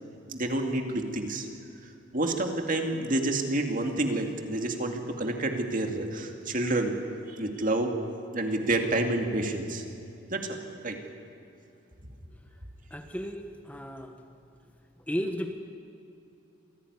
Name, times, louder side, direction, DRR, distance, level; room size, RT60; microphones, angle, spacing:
voice 1, 0.3-1.5 2.1-7.0 7.3-7.9 8.3-9.8 10.3-10.6 10.8-11.0, right 2 dB, 45° right, 4 dB, 2.4 m, -29 dB
voice 2, 12.9-14.1 15.1-15.6, equal, 10° left, 5 dB, 1.2 m, -34 dB
27.0 x 17.0 x 9.7 m, 2.7 s
head